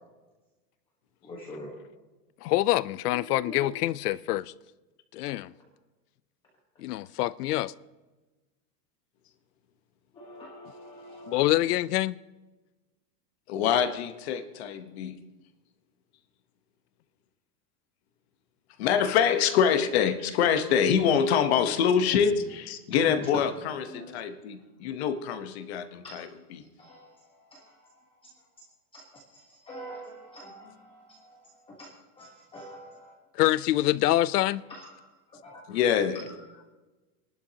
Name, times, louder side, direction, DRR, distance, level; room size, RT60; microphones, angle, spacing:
voice 1, 1.2-1.7 3.1-3.6 10.1-11.4 23.9-24.2 26.0-26.2 26.8-27.9 28.9-29.0 29.3-31.4 31.7-31.9 32.2-33.1 34.7-34.9 35.4-35.6, equal, 10° left, 1.2 m, -45 dB
voice 2, 2.4-4.5 5.1-5.5 6.8-7.7 11.3-12.2 33.3-34.6, left 16 dB, 70° left, 0.6 m, -25 dB
voice 3, 13.5-15.2 18.8-26.7 35.7-36.3, left 7 dB, 40° left, 1.0 m, -25 dB
25.5 x 12.0 x 2.8 m
supercardioid pair, 175°, 48 cm